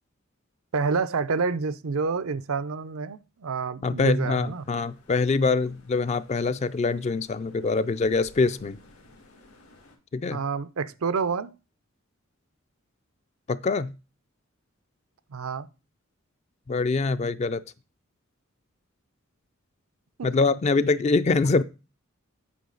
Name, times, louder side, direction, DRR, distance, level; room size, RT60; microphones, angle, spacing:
voice 1, 0.7-4.6 10.3-11.5 15.3-15.7 20.2-20.3, right 5 dB, 80° right, 0.5 m, -28 dB
voice 2, 3.8-8.8 10.1-10.4 13.5-13.9 16.7-17.6 20.2-21.6, left 3 dB, 30° left, 0.3 m, -24 dB
sound 1, 4.1-10.0, left 2 dB, 90° left, 1.9 m, -56 dB
8.5 x 5.5 x 3.9 m
head